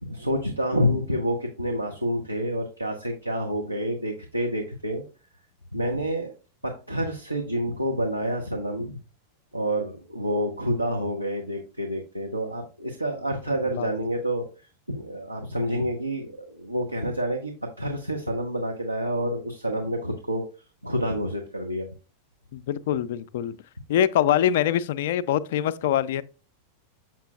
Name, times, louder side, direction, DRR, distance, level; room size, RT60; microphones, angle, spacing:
voice 1, 0.0-5.0 5.7-6.3 6.6-9.0 9.5-14.4 14.9-20.4 20.8-21.9, equal, 85° right, 0.8 m, -28 dB
voice 2, 22.5-23.6 23.9-26.2, left 10 dB, 55° left, 0.4 m, -24 dB
7.3 x 5.9 x 2.3 m
figure-of-eight pair, 90°, 0 cm